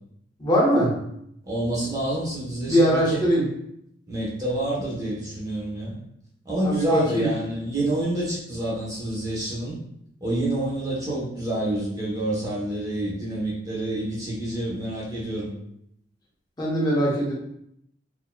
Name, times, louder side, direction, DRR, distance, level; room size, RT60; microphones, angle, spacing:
voice 1, 0.4-1.0 2.7-3.5 6.6-7.3 16.6-17.3, equal, 20° left, -6 dB, 0.9 m, -21 dB
voice 2, 1.4-3.3 4.1-6.0 6.4-9.8 10.2-15.5, right 1 dB, 20° right, -5 dB, 0.9 m, -28 dB
4.0 x 2.8 x 2.2 m, 0.74 s
head